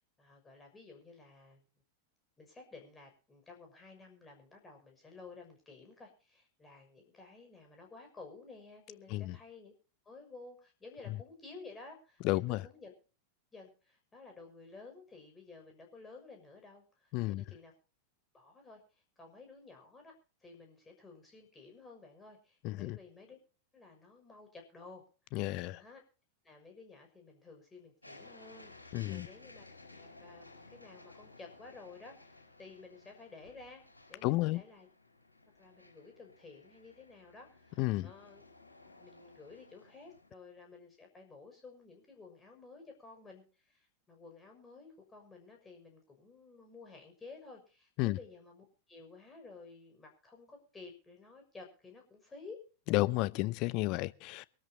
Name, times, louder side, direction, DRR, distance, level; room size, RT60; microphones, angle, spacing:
voice 1, 0.2-1.6 2.4-9.7 10.0-12.9 13.5-17.7 18.3-18.8 19.2-20.1 20.4-23.4 23.7-25.0 25.3-26.0 26.4-29.6 29.9-34.9 35.6-38.4 38.8-52.6, left 3 dB, 15° left, 6.3 m, -53 dB
voice 2, 12.2-12.6 17.1-17.4 22.6-23.0 25.3-25.8 28.9-29.3 34.2-34.6 37.8-38.1 48.0-48.2 52.9-54.5, left 19 dB, 40° left, 0.6 m, -32 dB
sound 1, 28.0-40.3, left 2 dB, 85° left, 4.3 m, -57 dB
24.0 x 13.5 x 2.9 m
figure-of-eight pair, 90°, 0 cm